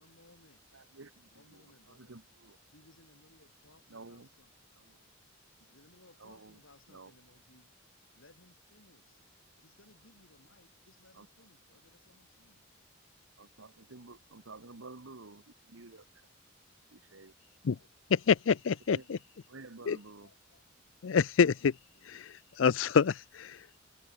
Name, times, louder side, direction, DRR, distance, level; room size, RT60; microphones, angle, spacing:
voice 1, 0.0-0.7 1.3-2.2 2.5-4.7 5.3-12.7 15.9-16.1 21.6-22.9, left 2 dB, 90° left, 6.2 m, -63 dB
voice 2, 0.7-2.6 3.9-4.3 4.8-5.1 6.2-6.6 6.9-7.1 11.1-11.3 13.4-16.3 16.9-17.3 18.9-19.2 19.5-20.3, right 3 dB, 85° right, 1.4 m, -51 dB
voice 3, 18.1-19.2 19.9-20.0 21.0-21.7 22.1-23.8, left 6 dB, 70° left, 0.5 m, -27 dB
head